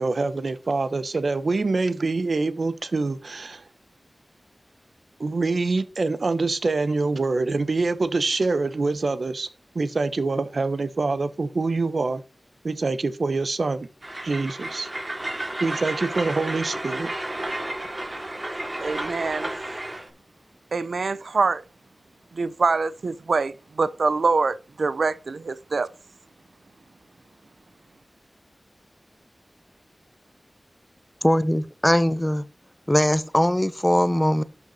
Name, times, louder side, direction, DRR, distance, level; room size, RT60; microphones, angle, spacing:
voice 1, 0.0-3.6 5.2-9.5 9.7-12.2 12.6-13.9 14.2-14.9 15.6-17.1, right 3 dB, 70° right, 1.1 m, -25 dB
Train, 14.0-20.1, right 1 dB, 30° right, 3.5 m, -32 dB
voice 2, 18.8-19.5 20.7-21.6 22.3-25.9, right 4 dB, 85° right, 0.6 m, -24 dB
voice 3, 31.2-32.4 32.9-34.4, equal, 10° left, 0.8 m, -21 dB
12.0 x 6.0 x 4.2 m
wide cardioid pair, 75°, 0 cm